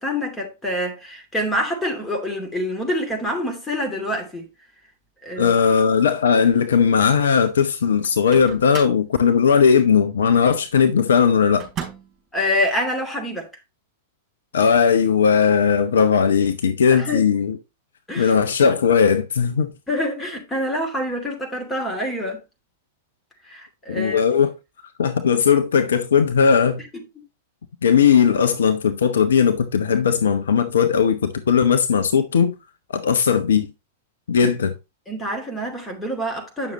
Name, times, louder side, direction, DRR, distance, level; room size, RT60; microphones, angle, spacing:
voice 1, 0.0-4.4 5.2-5.6 12.3-13.5 16.9-17.3 18.1-18.3 19.9-22.4 23.4-24.2 35.1-36.7, left 1 dB, 10° left, 2.6 m, -26 dB
voice 2, 5.4-11.7 14.5-17.6 18.2-19.7 23.9-24.5 25.0-26.8 27.8-32.5 32.9-33.7 34.3-34.7, left 6 dB, 65° left, 0.8 m, -18 dB
Microwave oven, 8.0-9.1 11.6-12.2, right 7 dB, 25° right, 4.4 m, -35 dB
9.0 x 6.5 x 3.0 m
figure-of-eight pair, 100°, 0 cm